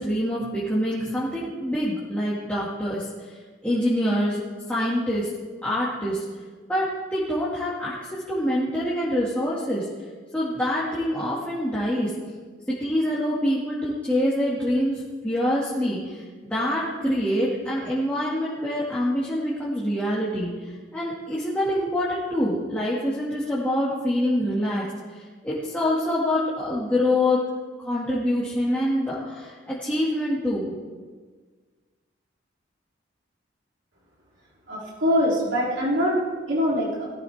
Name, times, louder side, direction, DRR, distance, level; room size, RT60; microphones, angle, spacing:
voice 1, 0.0-3.1 3.6-4.4 4.7-5.3 5.6-6.2 6.7-9.9 10.3-12.1 12.7-16.2 16.5-20.5 20.9-24.8 25.1-27.4 27.8-30.7, left 1 dB, 5° left, -8 dB, 2.2 m, -25 dB
voice 2, 34.7-37.1, equal, 85° right, -6 dB, 3.4 m, -23 dB
18.0 x 14.0 x 3.6 m, 1.5 s
head